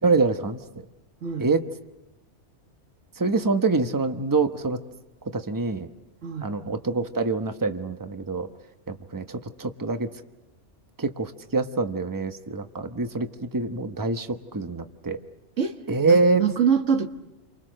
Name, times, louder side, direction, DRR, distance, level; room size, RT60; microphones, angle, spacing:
voice 1, 0.0-0.6 1.4-1.6 3.2-4.8 5.3-5.9 6.4-8.5 8.9-10.1 11.0-15.2 15.9-16.5, right 3 dB, 15° right, 1.0 m, -25 dB
voice 2, 6.2-6.5 15.6-15.8 16.1-17.1, right 7 dB, 90° right, 1.8 m, -24 dB
29.5 x 24.5 x 6.5 m
omnidirectional pair, 1.2 m